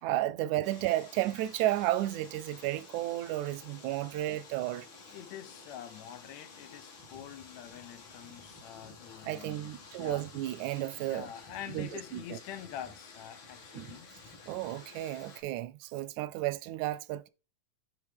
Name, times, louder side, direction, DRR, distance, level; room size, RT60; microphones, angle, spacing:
voice 1, 0.0-4.9 9.2-11.3 11.7-12.4 13.7-14.0 14.5-17.3, right 15 dB, 90° right, 2.0 m, -33 dB
sound 1, 0.6-15.4, left 4 dB, 45° left, 2.2 m, -52 dB
voice 2, 5.1-10.2 11.1-14.1, left 10 dB, 75° left, 2.1 m, -46 dB
10.0 x 3.5 x 3.4 m
omnidirectional pair, 3.3 m